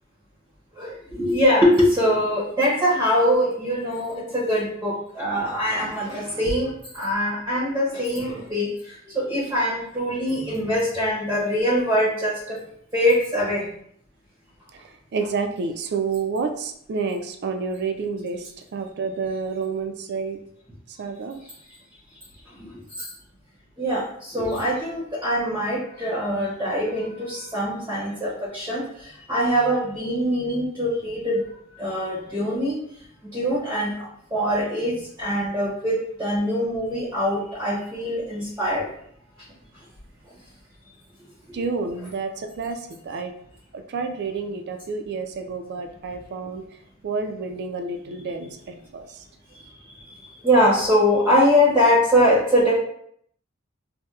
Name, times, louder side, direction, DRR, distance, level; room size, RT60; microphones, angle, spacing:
voice 1, 0.8-12.6 12.9-13.7 22.6-23.1 23.8-31.4 31.7-32.8 33.2-38.9 50.2-52.8, equal, 15° right, -6 dB, 0.6 m, -23 dB
voice 2, 14.7-20.4 20.9-21.4 41.5-43.3 43.7-46.6 47.0-49.2, right 4 dB, 50° right, 6 dB, 0.3 m, -29 dB
4.1 x 2.1 x 2.3 m, 0.67 s
head